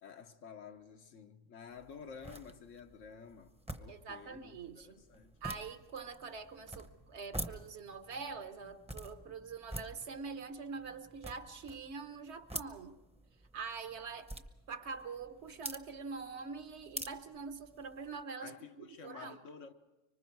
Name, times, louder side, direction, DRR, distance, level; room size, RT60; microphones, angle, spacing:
voice 1, 0.0-5.3 18.4-19.7, left 6 dB, 85° left, 1.5 m, -51 dB
sound 1, 1.7-18.2, right 1 dB, 5° right, 0.7 m, -48 dB
voice 2, 3.9-5.0 5.4-13.0 13.5-19.4, right 5 dB, 65° right, 1.3 m, -45 dB
25.0 x 24.5 x 4.6 m
omnidirectional pair, 1.3 m